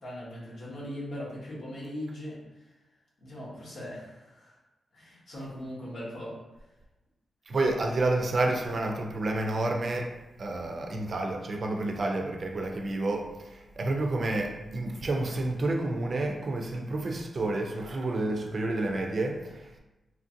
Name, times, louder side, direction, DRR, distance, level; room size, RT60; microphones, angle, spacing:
voice 1, 0.0-2.4 3.2-4.6 4.9-6.4, equal, 85° left, -6 dB, 1.0 m, -39 dB
voice 2, 7.5-10.1 10.4-19.8, right 2 dB, 50° right, 2 dB, 0.4 m, -29 dB
3.0 x 2.6 x 2.5 m, 1.0 s
cardioid pair, 90°, 0 cm